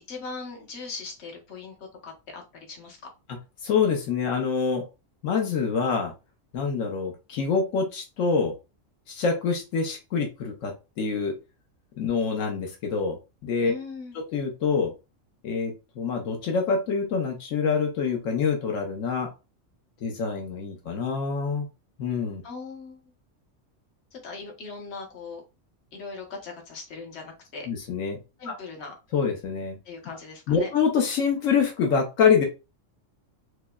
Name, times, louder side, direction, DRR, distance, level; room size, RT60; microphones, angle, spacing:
voice 1, 0.1-3.1 13.6-14.1 22.4-23.1 24.1-25.4 25.9-27.7 28.4-28.9 29.8-30.7, left 4 dB, 60° left, 1 dB, 1.2 m, -39 dB
voice 2, 3.6-4.8 5.2-6.1 6.5-8.5 9.1-11.3 12.0-13.2 13.4-13.7 14.3-14.9 15.4-19.3 20.0-21.7 22.0-22.4 27.7-28.2 28.5-28.6 29.1-29.8 30.5-32.5, left 5 dB, 85° left, 2 dB, 1.1 m, -25 dB
4.7 x 2.1 x 2.3 m, 0.28 s
omnidirectional pair, 1.3 m